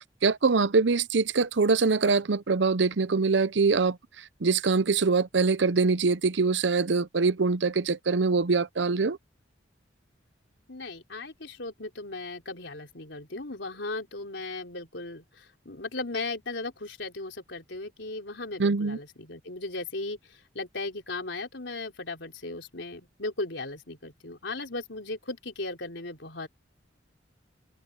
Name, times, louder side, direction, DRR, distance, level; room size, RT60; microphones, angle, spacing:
voice 1, 0.2-4.0 4.4-9.2 18.6-19.0, right 4 dB, 75° right, 0.7 m, -24 dB
voice 2, 10.7-26.5, left 2 dB, 75° left, 3.6 m, -37 dB
open air
head